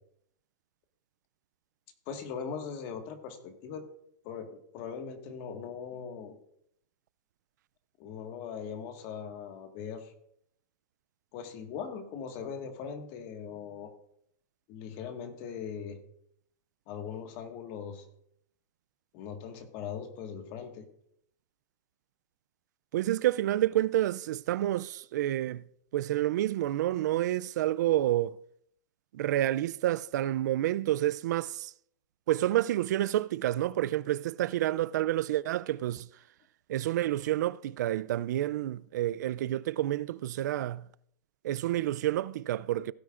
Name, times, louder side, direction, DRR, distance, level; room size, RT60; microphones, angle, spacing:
voice 1, 2.1-3.8 4.2-6.3 8.0-10.1 11.3-13.9 14.7-16.0 16.9-18.1 19.1-20.9, left 7 dB, 40° left, 1.6 m, -40 dB
voice 2, 22.9-25.6 25.9-28.4 29.1-31.7 32.3-36.1 36.7-40.9 41.4-42.9, right 14 dB, 75° right, 0.4 m, -29 dB
16.5 x 9.2 x 2.5 m
supercardioid pair, 155°, 10 cm